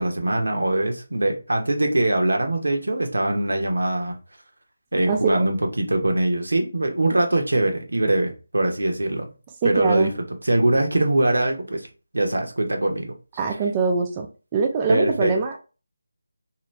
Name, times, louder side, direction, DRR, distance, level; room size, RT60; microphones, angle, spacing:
voice 1, 0.0-4.1 4.9-9.3 9.6-11.9 12.1-13.1 14.9-15.3, right 1 dB, 85° right, 0.9 m, -22 dB
voice 2, 5.1-5.5 9.6-10.1 13.4-14.3 14.5-15.6, right 4 dB, 20° right, 0.3 m, -23 dB
2.8 x 2.2 x 3.2 m
figure-of-eight pair, 165°, 0 cm